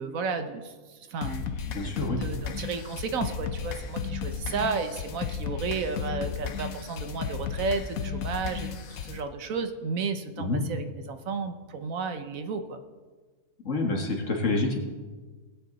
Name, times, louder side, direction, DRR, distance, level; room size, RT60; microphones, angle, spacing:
voice 1, 0.0-12.8, right 4 dB, 75° right, 8 dB, 1.4 m, -33 dB
sound 1, 1.2-9.2, left 6 dB, 85° left, 1.3 m, -34 dB
voice 2, 1.7-2.2 10.4-10.6 13.7-14.8, left 2 dB, 65° left, 1 dB, 2.1 m, -27 dB
19.0 x 8.5 x 4.1 m, 1.4 s
omnidirectional pair, 1.4 m